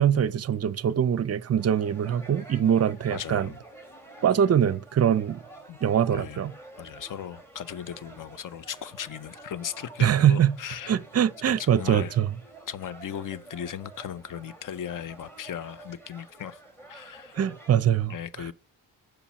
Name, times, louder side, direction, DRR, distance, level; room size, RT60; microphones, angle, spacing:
voice 1, 0.0-3.5 4.2-5.4 5.8-6.5 10.0-10.6 10.9-12.3 17.3-18.5, right 9 dB, 40° right, 0.6 m, -23 dB
sound 1, 1.6-17.8, right 2 dB, 5° left, 2.2 m, -49 dB
voice 2, 3.1-3.6 5.7-5.8 6.1-6.4 6.8-10.9 11.5-12.2 12.7-16.6 16.9-17.4 18.1-18.5, left 9 dB, 50° left, 0.7 m, -37 dB
7.1 x 5.3 x 5.8 m
cardioid pair, 105°, 40 cm